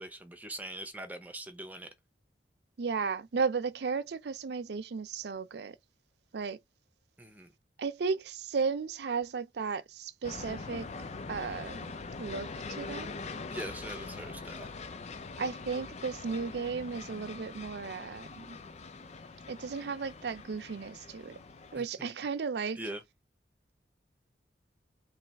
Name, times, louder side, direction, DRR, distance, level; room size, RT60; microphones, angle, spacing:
voice 1, 0.0-1.9 7.2-7.5 13.5-14.7 21.7-22.1 22.7-23.0, right 1 dB, 10° right, 0.7 m, -42 dB
voice 2, 2.8-5.8 6.3-6.6 7.8-10.9 11.3-11.9 12.2-13.2 15.4-18.6 19.5-21.4 21.7-22.8, right 5 dB, 65° right, 0.5 m, -34 dB
sound 1, 10.2-21.8, left 4 dB, 40° left, 0.5 m, -43 dB
3.3 x 3.0 x 4.1 m
head